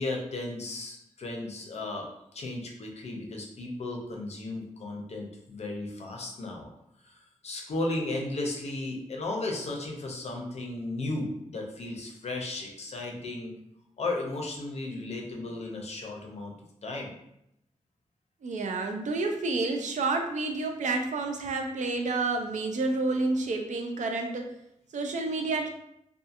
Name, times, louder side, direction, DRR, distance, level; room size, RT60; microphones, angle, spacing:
voice 1, 0.0-2.1 2.3-6.7 7.0-13.5 14.0-16.5 16.8-17.1, left 2 dB, 60° left, 1 dB, 0.5 m, -35 dB
voice 2, 18.4-24.4 24.9-25.7, right 3 dB, 85° right, 3 dB, 0.4 m, -29 dB
2.7 x 2.4 x 2.4 m, 0.79 s
wide cardioid pair, 160°, 12 cm